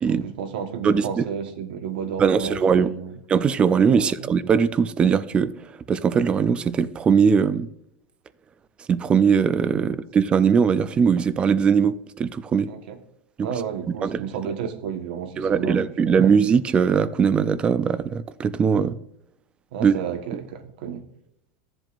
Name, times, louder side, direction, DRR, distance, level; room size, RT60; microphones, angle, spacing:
voice 1, 0.1-3.2 3.9-4.3 9.7-9.9 12.7-13.0 13.4-16.3 18.7-18.9 19.7-21.0, right 7 dB, 75° right, 1.3 m, -32 dB
voice 2, 0.8-1.3 2.2-2.9 3.3-5.5 5.9-7.7 8.9-12.7 13.4-13.5 13.9-14.2 15.4-18.9 19.8-19.9, right 6 dB, 20° right, 0.4 m, -20 dB
13.5 x 7.7 x 2.5 m
supercardioid pair, 155°, 5 cm